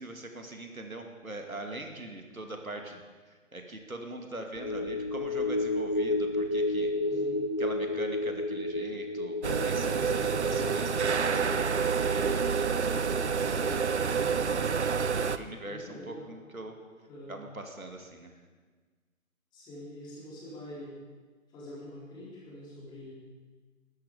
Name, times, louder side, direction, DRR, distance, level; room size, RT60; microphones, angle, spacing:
voice 1, 0.0-3.0 3.5-6.9 7.6-12.7 14.8-16.8 17.3-18.3, right 2 dB, 85° right, 4 dB, 2.5 m, -42 dB
sound 1, 4.5-15.2 15.5-15.6, left 2 dB, 30° left, 0.5 m, -33 dB
voice 2, 7.0-7.4 13.3-14.2 15.6-16.3 17.1-17.3 19.5-21.0 21.5-23.1, left 1 dB, 10° left, -6 dB, 3.7 m, -45 dB
sound 2, 9.4-15.4, right 5 dB, 55° right, 0.8 m, -28 dB
21.5 x 13.0 x 5.1 m, 1.4 s
figure-of-eight pair, 145°, 41 cm